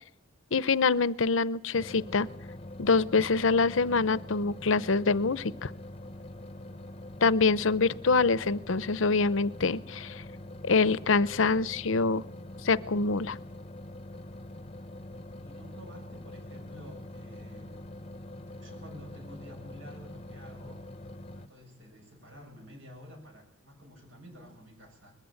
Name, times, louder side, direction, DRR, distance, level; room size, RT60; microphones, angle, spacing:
voice 1, 0.5-2.3 2.8-5.7 7.2-10.2 10.6-12.2 12.6-13.4, left 4 dB, 75° left, 18 dB, 0.7 m, -25 dB
sound 1, 1.7-21.5, left 1 dB, 30° left, 0.8 m, -44 dB
voice 2, 15.4-17.7 18.2-20.8 21.3-25.2, equal, 70° right, 3 dB, 7.9 m, -50 dB
21.5 x 14.5 x 9.1 m, 0.68 s
head